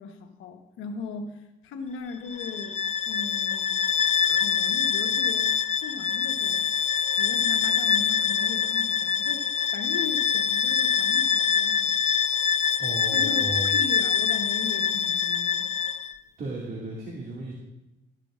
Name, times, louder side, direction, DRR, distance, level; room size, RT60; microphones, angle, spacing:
voice 1, 0.0-3.9 4.2-6.7 7.2-11.9 13.1-15.7, left 4 dB, 85° left, 5 dB, 1.1 m, -38 dB
Bowed string instrument, 2.3-16.1, left 7 dB, 35° left, 0.5 m, -25 dB
voice 2, 12.8-13.7 16.4-17.5, right 2 dB, 50° right, -3 dB, 2.2 m, -34 dB
13.5 x 11.5 x 2.5 m, 0.94 s
cardioid pair, 90°, 20 cm